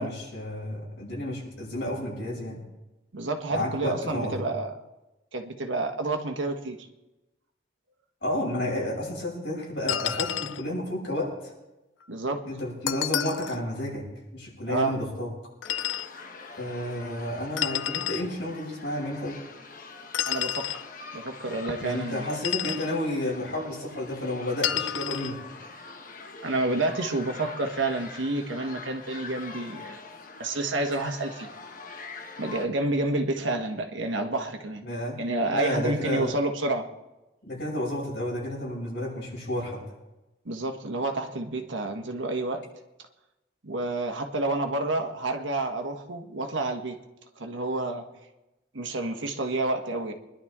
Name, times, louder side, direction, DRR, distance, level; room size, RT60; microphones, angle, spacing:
voice 1, 0.0-2.6 3.5-4.4 8.2-11.5 12.4-14.1 14.3-15.3 16.6-19.4 21.8-25.4 34.8-35.2 35.5-36.3 37.4-39.8, left 1 dB, 60° left, -4 dB, 6.9 m, -31 dB
voice 2, 3.1-4.8 5.3-6.8 12.1-12.4 14.7-14.9 20.3-20.7 21.1-22.4 26.4-30.0 30.4-31.5 32.4-34.8 35.2-36.9 40.4-42.6 43.6-47.0 47.4-48.0 48.7-50.1, right 2 dB, 80° right, 5 dB, 1.4 m, -29 dB
sound 1, 9.9-10.6 12.9-13.6 15.6-16.1 17.6-18.3 20.1-20.8 22.3-22.9 24.6-25.3, left 11 dB, 80° left, 0.5 m, -30 dB
sound 2, 15.6-32.7, left 4 dB, 45° left, 1.2 m, -44 dB
24.0 x 11.5 x 3.7 m, 1.0 s
head